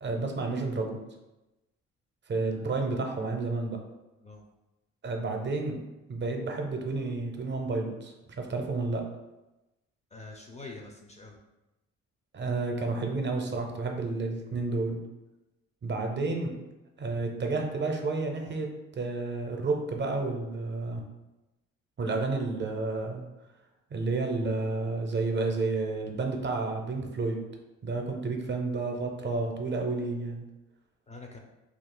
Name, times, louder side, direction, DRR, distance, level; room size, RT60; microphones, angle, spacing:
voice 1, 0.0-1.0 2.3-3.8 5.0-5.8 6.1-9.0 12.3-15.0 15.8-16.5 17.0-21.0 22.0-23.3 23.9-27.4 27.8-30.4, right 3 dB, 35° right, 3 dB, 0.5 m, -31 dB
voice 2, 10.1-11.4 31.1-31.4, left 3 dB, 25° left, 1 dB, 0.4 m, -45 dB
2.4 x 2.3 x 3.6 m, 1.0 s
cardioid pair, 90°, 30 cm